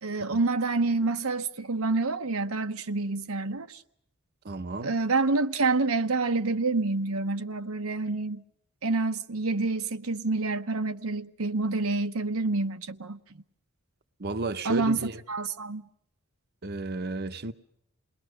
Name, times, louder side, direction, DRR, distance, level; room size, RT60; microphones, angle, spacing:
voice 1, 0.0-3.8 4.8-8.4 8.8-13.2 14.6-15.9, right 3 dB, 90° right, 1.0 m, -28 dB
voice 2, 4.4-4.9 14.2-15.2 16.6-17.5, right 3 dB, 50° right, 0.9 m, -33 dB
28.0 x 20.5 x 6.4 m
head